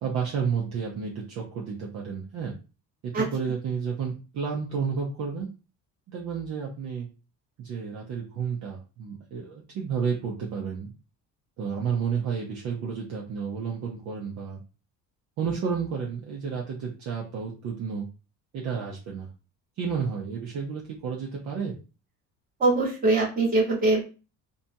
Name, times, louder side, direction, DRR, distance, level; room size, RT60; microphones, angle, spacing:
voice 1, 0.0-2.5 3.0-5.5 6.1-7.1 7.6-10.9 11.6-14.6 15.4-18.1 18.5-19.3 19.8-21.7, right 6 dB, 50° right, -2 dB, 0.6 m, -31 dB
voice 2, 22.6-24.1, right 2 dB, 25° right, -5 dB, 1.2 m, -22 dB
2.6 x 2.2 x 2.6 m, 0.33 s
cardioid pair, 155°, 35 cm